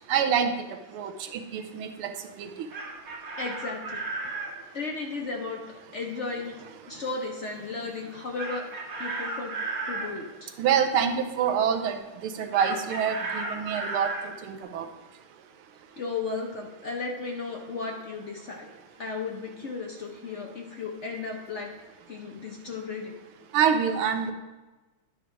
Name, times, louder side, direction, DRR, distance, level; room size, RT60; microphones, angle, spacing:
voice 1, 0.1-0.5 0.9-2.1 2.4-2.5 10.6-12.0 12.2-14.1 14.4-14.9 23.5-24.3, right 7 dB, 85° right, 6 dB, 1.6 m, -26 dB
Chicken rooster, 2.5-4.5 8.4-10.1 12.5-14.3, right 3 dB, 40° right, 2.1 m, -34 dB
voice 2, 3.4-4.0 4.7-5.6 5.9-8.6 9.0-9.6 9.9-10.5 13.4-13.5 16.0-18.7 19.0-21.7 22.1-23.2, left 4 dB, 60° left, 0 dB, 0.7 m, -35 dB
10.5 x 4.9 x 4.9 m, 1.2 s
omnidirectional pair, 2.3 m